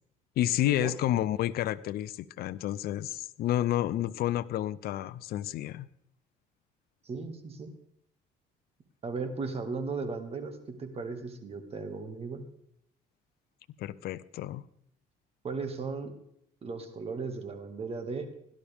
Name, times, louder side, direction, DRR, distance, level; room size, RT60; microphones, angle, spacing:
voice 1, 0.4-5.9 13.8-14.6, left 13 dB, 65° left, 15 dB, 0.5 m, -30 dB
voice 2, 7.1-7.7 9.0-12.5 15.4-16.1 16.6-18.3, right 4 dB, 35° right, 7 dB, 2.0 m, -36 dB
17.0 x 11.5 x 3.5 m, 0.75 s
cardioid pair, 110°, 17 cm